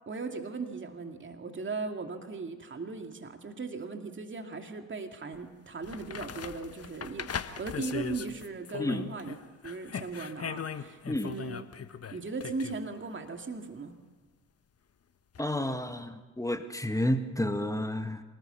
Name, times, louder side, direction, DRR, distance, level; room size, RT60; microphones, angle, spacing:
voice 1, 0.1-11.7 12.1-13.9, right 4 dB, 30° right, 5 dB, 2.7 m, -38 dB
sound 1, 5.3-5.4 5.8-9.4 9.6-12.8 15.3-15.4, left 7 dB, 35° left, 1.5 m, -39 dB
voice 2, 15.4-18.2, left 1 dB, 10° left, 7 dB, 2.0 m, -31 dB
26.5 x 19.5 x 7.1 m, 1.3 s
figure-of-eight pair, 45°, 39 cm